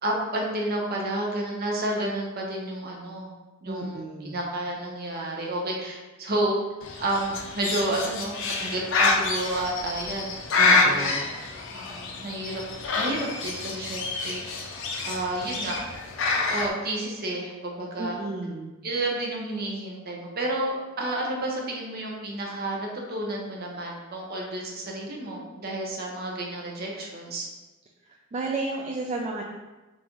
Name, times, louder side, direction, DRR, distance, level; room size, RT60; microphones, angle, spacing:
voice 1, 0.0-3.3 3.6-6.6 7.0-10.3 10.9-11.0 11.7-12.6 13.0-14.4 15.0-15.8 16.5-18.2 18.8-27.5, right 1 dB, 50° right, -1 dB, 0.8 m, -30 dB
voice 2, 3.7-4.4 10.6-11.2 18.0-18.7 28.3-29.4, right 3 dB, 35° right, -1 dB, 0.3 m, -32 dB
Bird, 6.8-16.7, left 3 dB, 65° left, 0.5 m, -27 dB
3.8 x 3.5 x 3.0 m, 1.2 s
head